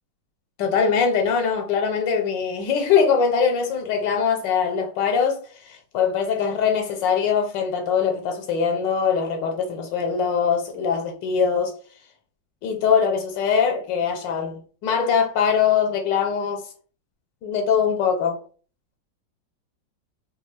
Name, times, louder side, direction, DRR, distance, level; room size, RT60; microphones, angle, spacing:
voice 1, 0.6-11.7 12.6-16.6 17.4-18.4, left 6 dB, 85° left, 1.3 m, -22 dB
3.1 x 2.3 x 3.0 m
omnidirectional pair, 2.0 m